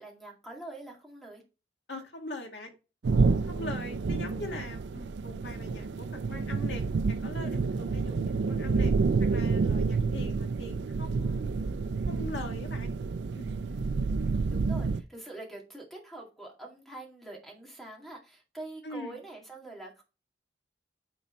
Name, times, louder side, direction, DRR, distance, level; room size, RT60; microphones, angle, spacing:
voice 1, 0.0-1.4 13.7-14.2 14.5-20.0, right 2 dB, ahead, 0 dB, 2.1 m, -45 dB
voice 2, 1.9-2.7 3.1-8.9 9.3-11.4 12.1-12.9 13.4-13.5 18.8-19.2, left 2 dB, 85° left, 2 dB, 2.0 m, -42 dB
sound 1, 3.0-15.0, right 4 dB, 80° right, 0.4 m, -29 dB
9.3 x 4.1 x 4.2 m, 0.31 s
head